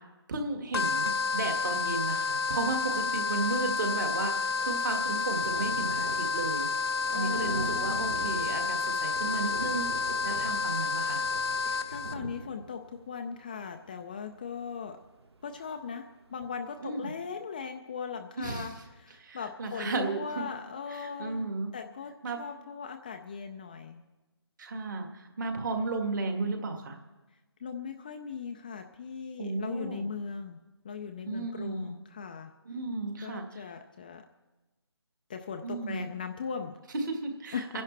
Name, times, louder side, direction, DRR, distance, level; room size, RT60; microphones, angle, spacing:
voice 1, 0.0-6.7 7.1-9.9 10.2-11.2 16.8-17.1 18.4-18.7 19.2-20.4 20.9-21.7 22.2-22.4 24.6-27.0 29.4-30.1 31.3-32.0 32.7-33.7 35.6-36.0 36.9-37.8, right 3 dB, 45° right, 4 dB, 1.9 m, -34 dB
sound 1, 0.7-12.1, left 5 dB, 60° left, 0.9 m, -30 dB
Thunder, 3.3-15.9 16.4-16.5 16.8-16.9, right 3 dB, 70° right, 1.6 m, -44 dB
voice 2, 7.1-8.3 11.6-15.0 15.4-21.4 21.7-24.0 27.6-30.6 30.8-32.5 33.2-34.2 35.3-36.8 37.5-37.8, left 6 dB, 20° left, 5 dB, 0.4 m, -39 dB
27.0 x 10.5 x 3.3 m, 1.1 s
figure-of-eight pair, 160°, 14 cm